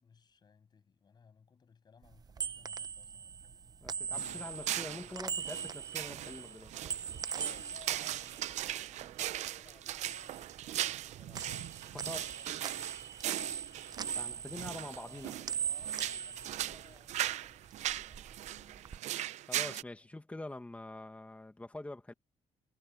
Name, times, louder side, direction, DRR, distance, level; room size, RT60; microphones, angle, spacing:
voice 1, 0.0-5.3 7.2-12.5 12.7-13.2 13.5-13.9 14.8-19.3 20.0-20.1, left 6 dB, 35° left, 8.0 m, -63 dB
sound 1, 2.1-9.4 9.7-11.1 11.3-17.3 17.7-19.0, right 7 dB, 35° right, 0.7 m, -41 dB
voice 2, 3.8-6.7 11.9-12.3 14.1-15.3 19.5-22.1, left 2 dB, 10° left, 1.9 m, -45 dB
sound 2, 4.1-19.8, right 13 dB, 70° right, 0.7 m, -39 dB
cardioid pair, 120°, 12 cm